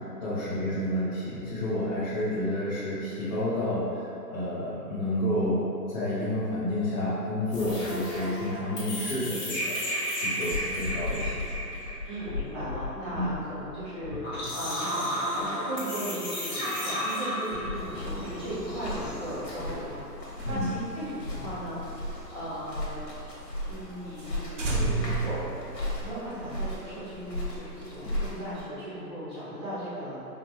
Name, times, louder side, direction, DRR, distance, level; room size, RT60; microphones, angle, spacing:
voice 1, 0.0-11.4 13.1-13.3 20.4-20.7, left 1 dB, 25° left, -16 dB, 0.8 m, -30 dB
sound 1, 7.5-17.8, left 1 dB, 45° left, 1.5 m, -32 dB
voice 2, 12.0-20.0 20.4-23.0 23.7-25.6 26.0-30.3, right 1 dB, 15° right, -12 dB, 0.8 m, -37 dB
sound 2, 17.7-28.6, left 1 dB, 80° left, 1.3 m, -36 dB
sound 3, 20.3-23.1 23.4-23.5 23.8-23.9 24.2-24.3 24.6-26.3, right 3 dB, 50° right, 0.6 m, -32 dB
5.1 x 2.2 x 2.9 m, 2.8 s
hypercardioid pair, 155°, 50 cm